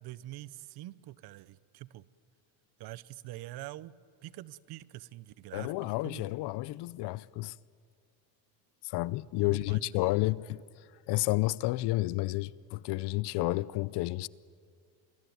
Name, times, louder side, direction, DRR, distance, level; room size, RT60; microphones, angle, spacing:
voice 1, 0.0-2.1 2.8-3.9 4.2-6.3 9.4-10.0, right 15 dB, 55° right, 0.8 m, -45 dB
voice 2, 5.5-7.6 8.8-14.3, left 19 dB, 60° left, 0.6 m, -31 dB
27.5 x 20.5 x 9.3 m
cardioid pair, 145°, 48 cm